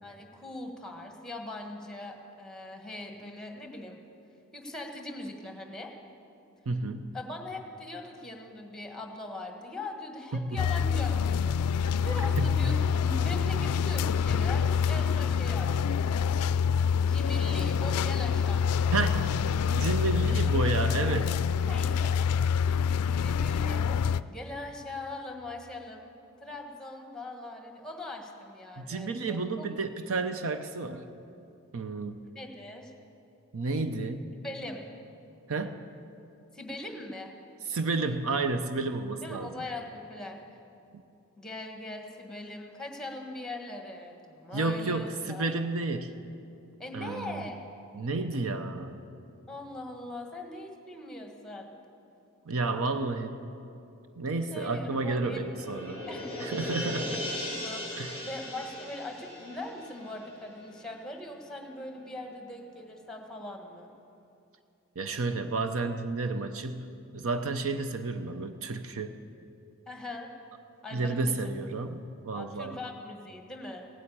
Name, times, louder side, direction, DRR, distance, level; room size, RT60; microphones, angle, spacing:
voice 1, 0.0-4.0 4.5-5.9 7.1-16.1 16.9-18.7 21.7-26.0 26.4-29.7 32.3-32.9 34.4-34.8 36.5-37.3 39.2-40.4 41.4-45.4 46.8-47.6 49.5-51.8 54.5-55.5 55.9-56.5 57.6-63.9 69.9-70.3 70.8-71.5 72.3-73.9, left 2 dB, 5° left, 3 dB, 1.5 m, -41 dB
voice 2, 6.7-7.1 10.3-10.6 12.4-12.6 18.9-19.2 19.7-21.4 28.8-31.1 31.7-32.2 33.5-34.3 35.5-35.8 37.7-39.5 44.5-46.1 46.9-47.4 47.9-49.0 52.5-53.4 54.2-56.0 56.4-57.2 58.0-58.2 65.0-66.9 67.1-69.2 70.9-72.8, right 3 dB, 65° right, 9 dB, 0.7 m, -31 dB
sound 1, 10.6-24.2, left 7 dB, 85° left, 0.4 m, -26 dB
sound 2, 54.2-61.1 61.5-61.6, left 1 dB, 45° right, 3.3 m, -39 dB
16.5 x 9.1 x 8.6 m, 2.7 s
head